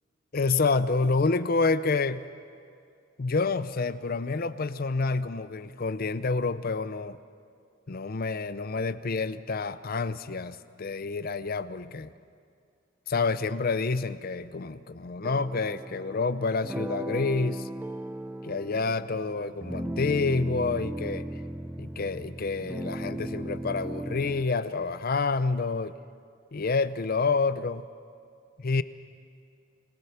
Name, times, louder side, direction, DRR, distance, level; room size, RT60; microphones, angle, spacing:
voice 1, 0.3-2.2 3.2-7.2 7.9-12.1 13.1-17.7 18.4-21.3 21.8-25.9 26.5-27.9 28.6-28.8, left 4 dB, 40° left, 15 dB, 0.5 m, -28 dB
sound 1, 15.2-24.4, right 1 dB, 10° right, 0.6 m, -36 dB
28.5 x 19.0 x 5.9 m, 2.3 s
head